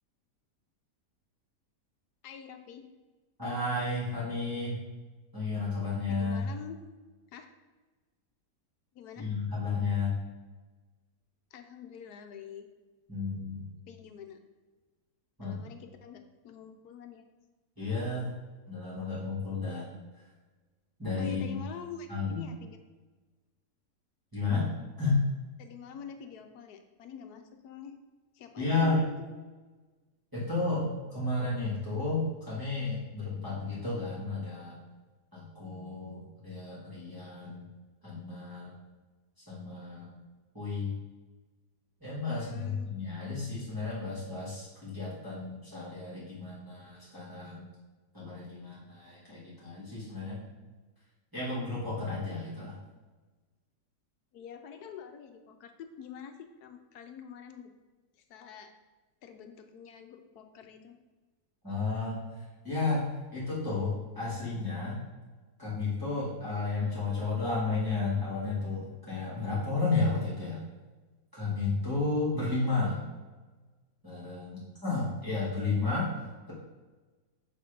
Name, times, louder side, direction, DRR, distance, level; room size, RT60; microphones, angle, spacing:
voice 1, 2.2-2.9 6.1-6.8 7.3-7.5 8.9-9.3 11.5-12.6 13.9-14.4 15.4-17.2 21.1-22.8 25.6-28.0 28.3-29.2 42.3-42.9 54.3-57.7 58.3-58.7 59.2-60.9, left 7 dB, 75° left, 7 dB, 1.2 m, -46 dB
voice 2, 3.4-4.8 5.3-6.4 9.2-10.1 13.1-13.7 15.4-15.6 17.8-18.3 18.7-19.9 21.0-21.6 22.1-22.4 24.3-24.7 25.0-25.2 28.6-29.0 30.3-34.8 35.3-37.7 38.0-38.7 39.5-40.1 40.5-40.9 42.0-47.7 48.1-50.4 51.3-52.8 61.6-62.2 62.6-63.1 63.3-65.0 65.6-70.6 71.3-73.0 74.0-76.1, left 3 dB, 10° right, -10 dB, 2.2 m, -32 dB
6.9 x 3.6 x 5.2 m, 1.3 s
omnidirectional pair, 1.7 m